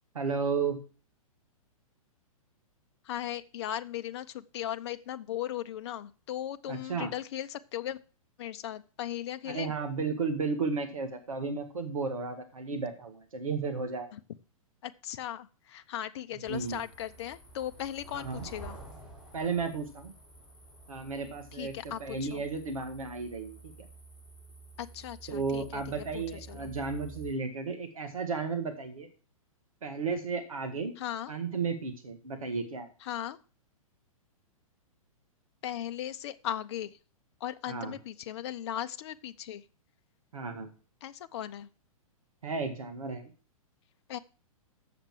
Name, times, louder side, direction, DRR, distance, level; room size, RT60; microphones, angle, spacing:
voice 1, 0.2-0.8 6.7-7.1 9.5-14.1 16.5-16.8 18.1-18.4 19.3-20.1 20.9-23.9 25.3-29.1 29.8-30.9 31.3-32.9 37.7-38.0 40.3-40.7 42.4-43.3, right 4 dB, 70° right, 6 dB, 1.7 m, -33 dB
voice 2, 3.0-8.0 8.4-9.7 14.1-14.2 14.8-18.8 21.5-22.4 24.8-25.8 26.1-26.8 31.0-31.3 33.0-33.4 35.6-37.0 37.4-39.6 41.0-41.7 44.1-44.2, left 11 dB, 50° left, 10 dB, 0.6 m, -37 dB
sound 1, 16.4-27.3, right 2 dB, 5° right, 5.8 m, -50 dB
7.3 x 6.8 x 7.4 m, 0.37 s
figure-of-eight pair, 110°, 18 cm